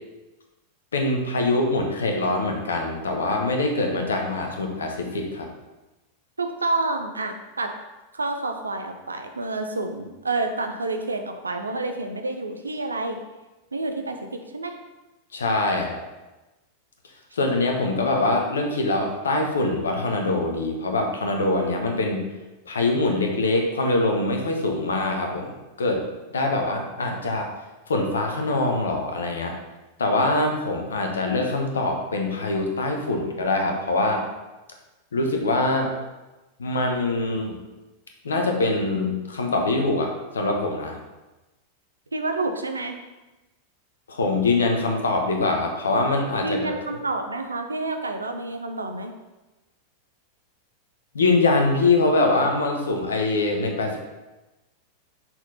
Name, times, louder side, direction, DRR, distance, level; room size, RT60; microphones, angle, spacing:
voice 1, 0.9-5.5 15.3-16.0 17.3-22.2 22.7-26.0 26.3-27.5 27.9-29.5 30.0-34.2 35.1-35.9 36.6-37.6 38.2-41.0 44.1-46.8 51.1-54.0, left 2 dB, 70° left, 2 dB, 1.0 m, -23 dB
voice 2, 6.4-7.7 8.1-13.2 13.7-14.8 42.1-43.0 46.4-49.1, right 2 dB, 80° right, 5 dB, 0.6 m, -29 dB
6.0 x 4.3 x 4.1 m, 1.1 s
figure-of-eight pair, 90°, 0 cm